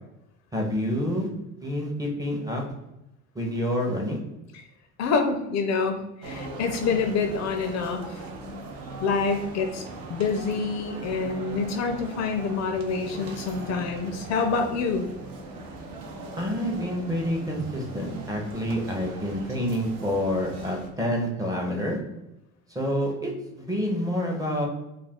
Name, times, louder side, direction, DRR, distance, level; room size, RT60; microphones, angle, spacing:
voice 1, 0.5-1.3 1.6-2.6 3.4-4.2 16.4-22.0 22.7-24.7, equal, 10° right, 0 dB, 0.5 m, -28 dB
voice 2, 5.0-8.2 9.0-9.8 10.1-15.1, left 4 dB, 50° left, 5 dB, 0.4 m, -27 dB
sound 1, 6.2-20.9, right 2 dB, 65° right, 0.7 m, -39 dB
2.4 x 2.3 x 3.4 m, 0.91 s
cardioid pair, 105°, 35 cm